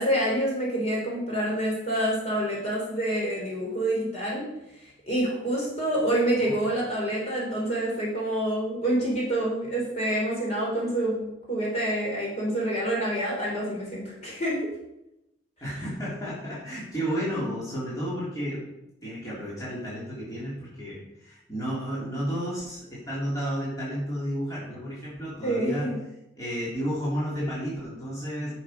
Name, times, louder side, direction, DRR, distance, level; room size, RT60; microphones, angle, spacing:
voice 1, 0.0-4.5 4.8-14.6 25.4-26.0, right 1 dB, 35° left, -4 dB, 3.7 m, -27 dB
voice 2, 15.6-18.6 19.0-26.0 26.4-28.5, equal, 20° left, -8 dB, 3.3 m, -32 dB
10.5 x 6.6 x 5.2 m, 0.88 s
head